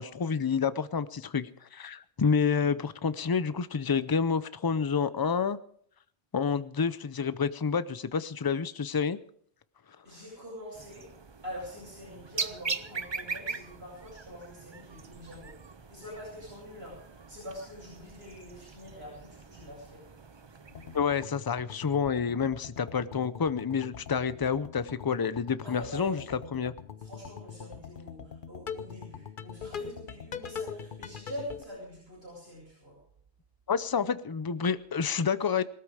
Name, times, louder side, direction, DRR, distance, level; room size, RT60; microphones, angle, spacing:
voice 1, 0.0-5.6 6.3-9.2 20.9-26.2 26.5-26.7 33.7-35.6, left 6 dB, 30° left, 15 dB, 0.5 m, -29 dB
voice 2, 10.0-11.1 11.4-15.6 15.9-20.1 25.6-26.3 27.0-33.0, equal, 70° right, -7 dB, 8.1 m, -44 dB
sound 1, 10.7-21.0, right 4 dB, 30° right, 0.6 m, -41 dB
sound 2, 20.7-31.6, left 7 dB, 55° left, 0.9 m, -43 dB
19.0 x 13.5 x 4.9 m, 0.63 s
omnidirectional pair, 1.1 m